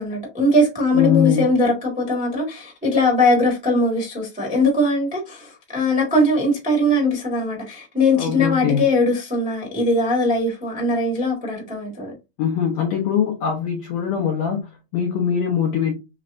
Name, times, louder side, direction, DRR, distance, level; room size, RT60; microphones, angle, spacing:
voice 1, 0.0-12.1, left 1 dB, 5° right, 0.7 m, -20 dB
voice 2, 0.9-1.5 8.2-8.8 12.4-15.9, left 8 dB, 75° left, 1.6 m, -22 dB
5.3 x 3.2 x 2.6 m
omnidirectional pair, 4.0 m